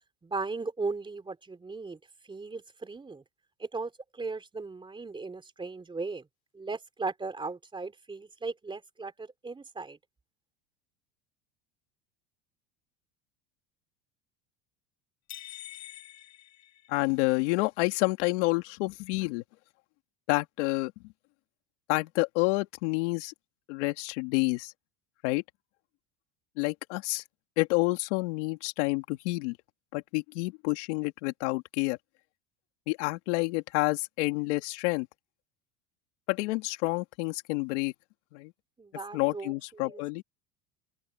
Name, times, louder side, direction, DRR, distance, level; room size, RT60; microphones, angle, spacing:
voice 1, 0.2-3.2 3.6-6.3 6.5-10.0 38.8-40.0, right 3 dB, 15° right, 3.3 m, -37 dB
sound 1, 15.3-17.4, left 14 dB, 50° left, 8.0 m, -46 dB
voice 2, 16.9-19.4 20.3-21.1 21.9-23.3 23.7-24.7 25.2-25.4 26.6-27.2 27.6-29.6 29.9-32.0 32.9-35.1 36.3-37.9 38.3-38.5 39.1-40.2, left 23 dB, 75° left, 2.6 m, -29 dB
open air
supercardioid pair, 130°, 35 cm